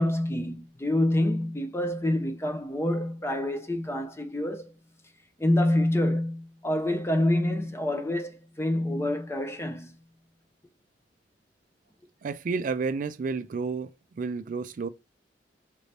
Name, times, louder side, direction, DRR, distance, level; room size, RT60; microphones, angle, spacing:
voice 1, 0.0-4.7 5.4-9.9, left 1 dB, 15° left, 0.5 m, -27 dB
voice 2, 12.2-14.9, right 4 dB, 50° right, 0.3 m, -31 dB
5.0 x 2.7 x 3.3 m
head